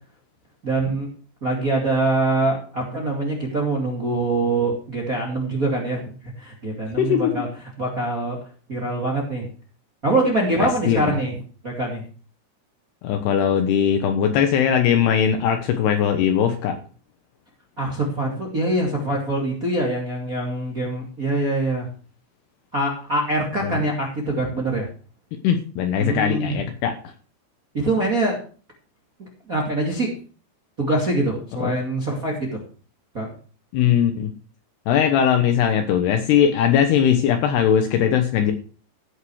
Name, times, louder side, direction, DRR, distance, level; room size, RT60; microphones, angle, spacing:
voice 1, 0.6-1.1 1.4-6.1 6.4-7.5 7.8-8.4 8.7-9.5 10.0-11.4 11.6-12.0 17.8-21.9 22.7-24.9 26.0-26.6 27.7-28.4 29.2-30.1 30.8-32.6 33.1-33.3, right 2 dB, 25° right, 0 dB, 1.9 m, -24 dB
voice 2, 7.0-7.3 10.6-11.2 13.0-16.8 23.6-23.8 25.4-26.9 31.6-31.7 33.7-34.3 34.9-38.5, left 8 dB, 75° left, 7 dB, 2.9 m, -20 dB
15.5 x 6.6 x 6.3 m, 0.40 s
omnidirectional pair, 5.1 m